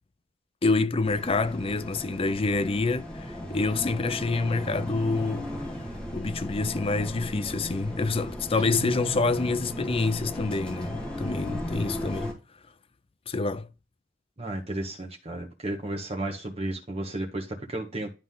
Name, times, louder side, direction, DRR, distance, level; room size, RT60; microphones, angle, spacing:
voice 1, 0.6-5.5 6.1-12.3 13.3-13.7, left 3 dB, 30° left, 0.5 m, -27 dB
sound 1, 1.0-12.3, left 1 dB, 5° left, 2.1 m, -36 dB
Guitar, 8.6-10.3, right 3 dB, 90° right, 1.7 m, -40 dB
voice 2, 14.4-18.1, right 1 dB, 30° right, 1.6 m, -33 dB
11.5 x 3.9 x 3.8 m
head